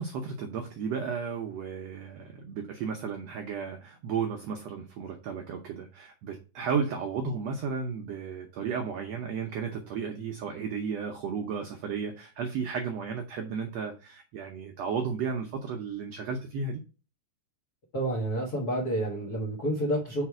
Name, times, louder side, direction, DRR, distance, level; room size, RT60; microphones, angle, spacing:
voice 1, 0.0-16.8, right 6 dB, 90° right, 3 dB, 1.4 m, -34 dB
voice 2, 17.9-20.2, right 1 dB, 70° left, -3 dB, 0.9 m, -29 dB
5.1 x 4.1 x 4.7 m, 0.34 s
omnidirectional pair, 4.0 m